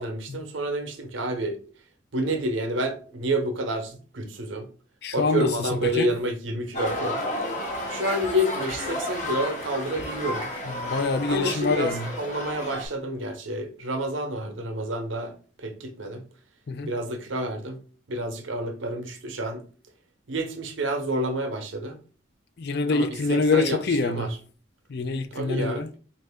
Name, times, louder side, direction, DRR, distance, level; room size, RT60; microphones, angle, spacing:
voice 1, 0.0-1.6 2.1-4.7 5.1-7.2 7.9-10.5 11.3-16.2 16.8-17.8 18.1-19.6 20.3-22.0 22.9-24.3 25.3-25.8, right 1 dB, 90° right, 0.8 m, -29 dB
voice 2, 5.0-6.1 10.7-12.1 16.7-16.9 22.6-24.3 24.9-25.9, left 3 dB, 55° left, 0.5 m, -25 dB
sound 1, 6.7-12.9, left 1 dB, 40° left, 0.9 m, -32 dB
4.3 x 2.6 x 3.4 m
head